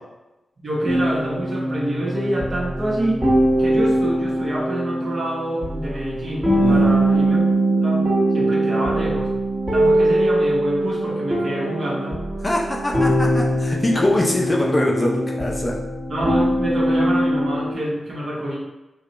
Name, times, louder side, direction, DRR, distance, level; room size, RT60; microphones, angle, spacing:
voice 1, 0.6-3.2 3.6-7.4 7.8-9.3 9.7-12.3 16.1-18.6, right 1 dB, 55° right, -4 dB, 0.9 m, -27 dB
sound 1, 0.9-17.7, right 1 dB, 20° right, 1.0 m, -21 dB
voice 2, 6.6-7.0 12.4-15.8, left 1 dB, 20° left, -2 dB, 0.5 m, -22 dB
3.2 x 2.2 x 3.8 m, 1.0 s
wide cardioid pair, 115°, 0 cm